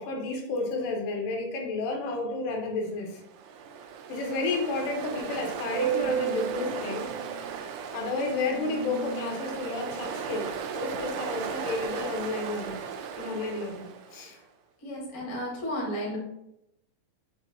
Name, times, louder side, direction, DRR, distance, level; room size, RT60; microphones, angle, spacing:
voice 1, 0.0-3.2 4.1-7.1 7.9-12.8 13.2-14.4, left 3 dB, 80° left, 1 dB, 2.3 m, -31 dB
Ocean, 3.2-14.3, right 8 dB, 85° right, 2.1 m, -34 dB
voice 2, 14.8-16.2, equal, 55° left, -4 dB, 0.9 m, -33 dB
5.9 x 2.5 x 2.7 m, 0.82 s
omnidirectional pair, 3.8 m